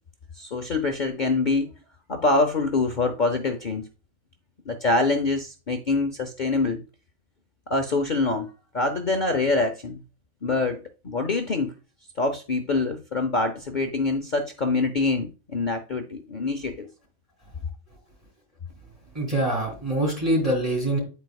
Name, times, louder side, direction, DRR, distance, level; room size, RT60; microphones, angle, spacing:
voice 1, 0.4-1.7 2.1-3.8 4.7-6.8 7.7-10.0 10.4-11.7 12.2-16.9, left 3 dB, 45° left, 0.6 m, -25 dB
voice 2, 19.1-21.0, right 1 dB, 25° right, 3.3 m, -24 dB
10.0 x 4.5 x 2.3 m
omnidirectional pair, 1.5 m